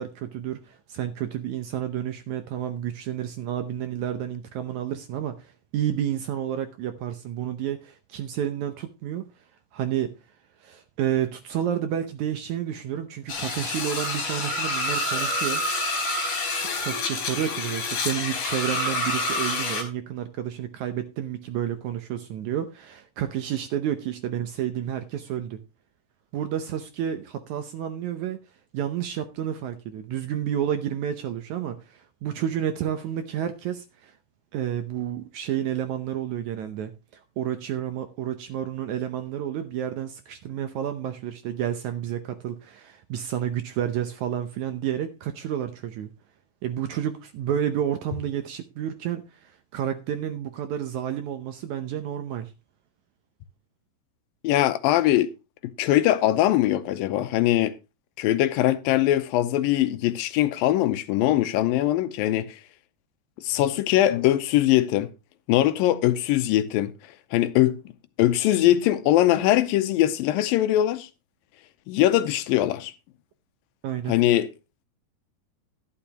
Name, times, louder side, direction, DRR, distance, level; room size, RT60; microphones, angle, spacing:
voice 1, 0.0-9.2 9.7-10.1 10.6-15.6 16.7-25.6 26.3-28.4 28.7-34.1 34.5-36.9 37.4-46.1 46.6-52.5 73.8-74.2, right 10 dB, 70° right, 1.9 m, -30 dB
sound 1, 13.3-19.8, left 2 dB, 60° left, 4.2 m, -28 dB
voice 2, 54.4-55.3 55.6-57.7 58.2-62.6 63.4-65.1 65.5-66.9 67.3-67.8 68.2-71.1 71.9-72.9 74.1-74.5, left 13 dB, 90° left, 2.5 m, -21 dB
12.0 x 11.0 x 2.9 m
omnidirectional pair, 4.0 m